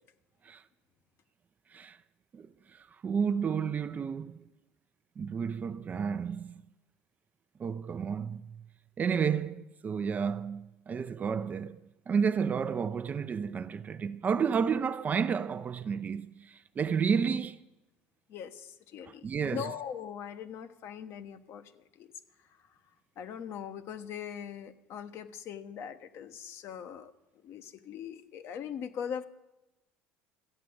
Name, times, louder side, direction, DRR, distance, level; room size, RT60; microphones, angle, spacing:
voice 1, 2.3-4.5 5.2-6.6 7.6-8.6 9.0-11.8 12.1-17.6 19.1-19.7, right 6 dB, 30° right, 0.6 m, -31 dB
voice 2, 18.3-22.1 22.6-22.7 23.2-27.1 27.4-29.2, left 8 dB, 55° left, 1.1 m, -41 dB
13.5 x 8.4 x 7.8 m
supercardioid pair, 100°, 5 cm